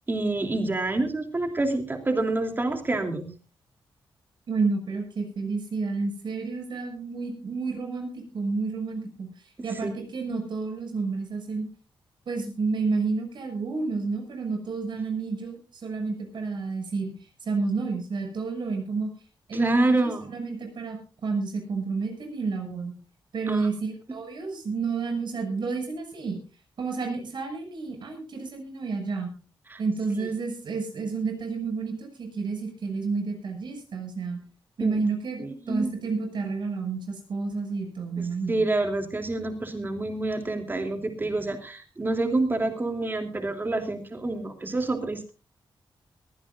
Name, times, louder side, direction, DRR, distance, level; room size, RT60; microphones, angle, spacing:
voice 1, 0.1-3.3 9.8-9.9 19.5-20.3 23.5-23.7 29.7-29.8 34.8-35.0 35.4-35.9 38.5-45.3, right 2 dB, 25° right, 6 dB, 3.0 m, -27 dB
voice 2, 4.5-9.3 9.6-11.7 12.2-17.1 17.4-19.1 19.5-22.9 23.3-26.4 26.8-29.3 29.8-34.4 34.8-38.6, right 4 dB, 65° right, 4 dB, 6.6 m, -30 dB
22.0 x 16.0 x 2.6 m, 0.35 s
wide cardioid pair, 135°, 8 cm